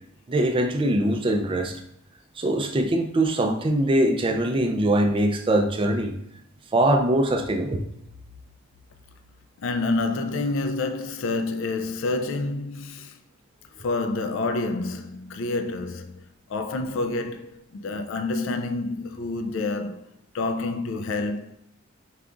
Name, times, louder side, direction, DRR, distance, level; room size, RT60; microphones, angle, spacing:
voice 1, 0.3-1.7 2.4-6.1 6.7-7.8, right 1 dB, 25° right, 0.4 m, -22 dB
voice 2, 9.6-13.2 13.8-20.1 20.3-21.6, left 3 dB, 65° left, 0.4 m, -28 dB
4.9 x 2.3 x 3.7 m
head